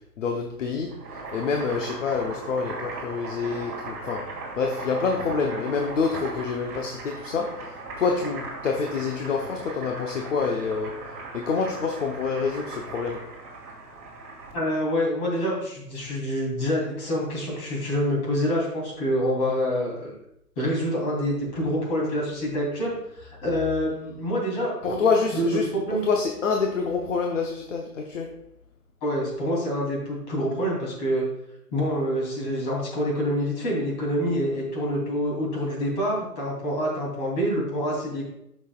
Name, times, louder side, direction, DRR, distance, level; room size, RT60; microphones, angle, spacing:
voice 1, 0.2-0.9 1.3-4.3 4.6-11.0 11.3-13.2 24.8-25.7 26.0-28.3, left 5 dB, 50° left, 2 dB, 0.9 m, -27 dB
Boiling, 0.8-14.7, right 3 dB, 20° right, 2.2 m, -38 dB
voice 2, 14.5-20.1 20.6-25.1 25.3-26.0 29.0-31.2 31.7-38.3, equal, 25° left, -3 dB, 3.1 m, -26 dB
11.5 x 6.4 x 2.4 m, 0.79 s
hypercardioid pair, 150°, 48 cm